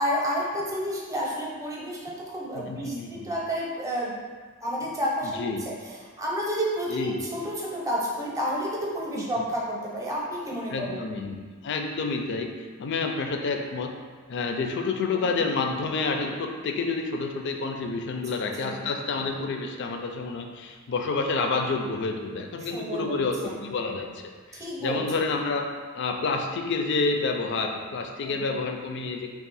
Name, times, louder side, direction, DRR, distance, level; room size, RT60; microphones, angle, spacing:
voice 1, 0.0-4.1 4.6-5.7 6.2-11.0 15.1-15.4 18.3-18.8 22.6-23.7 24.5-25.0 28.2-28.4, equal, 15° right, -4 dB, 0.7 m, -30 dB
voice 2, 2.5-3.3 5.2-5.6 6.9-7.2 9.2-9.3 10.7-12.5 12.8-13.9 14.3-24.2 24.5-29.3, left 4 dB, 55° left, 4 dB, 0.4 m, -29 dB
3.5 x 2.4 x 4.1 m, 1.6 s
head